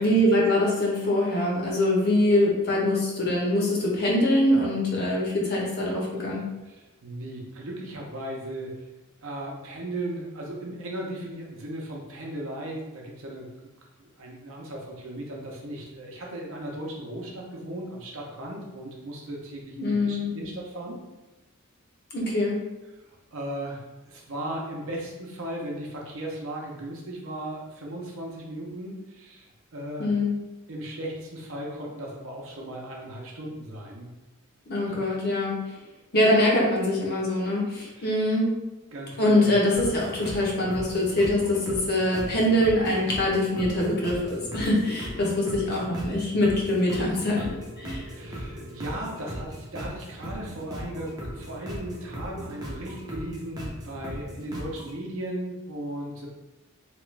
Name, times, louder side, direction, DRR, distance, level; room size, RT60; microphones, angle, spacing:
voice 1, 0.0-6.4 19.8-20.3 22.1-22.6 30.0-30.3 34.7-35.6 36.1-38.5 39.2-48.0, left 1 dB, 45° left, -3 dB, 0.8 m, -23 dB
voice 2, 6.6-8.9 9.2-13.7 14.0-21.0 23.3-23.8 24.1-30.1 30.7-34.1 34.8-35.0 38.0-38.1 38.9-39.5 48.1-56.3, right 1 dB, 65° right, -2 dB, 0.7 m, -36 dB
sound 1, 39.8-54.9, equal, 20° right, 0.5 m, -38 dB
2.9 x 2.3 x 3.2 m, 1.0 s
head